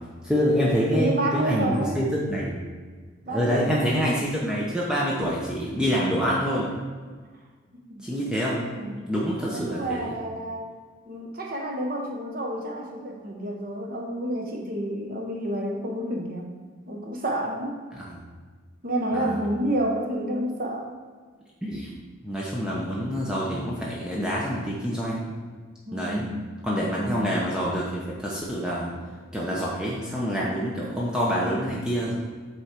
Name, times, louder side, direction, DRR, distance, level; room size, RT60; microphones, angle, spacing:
voice 1, 0.2-2.6 3.3-6.7 8.0-8.6 9.1-10.1 17.9-18.2 19.1-19.3 21.6-21.9 22.2-25.2 25.9-26.3 26.6-28.9 29.3-32.2, equal, 5° right, -5 dB, 0.7 m, -26 dB
voice 2, 0.9-2.0 3.3-3.9 7.9-8.0 8.5-9.0 9.5-10.7 11.1-16.5 16.9-17.8 18.8-20.9 25.9-26.4 27.0-27.4, right 1 dB, 45° right, 1 dB, 0.9 m, -29 dB
8.1 x 3.1 x 4.3 m, 1.5 s
head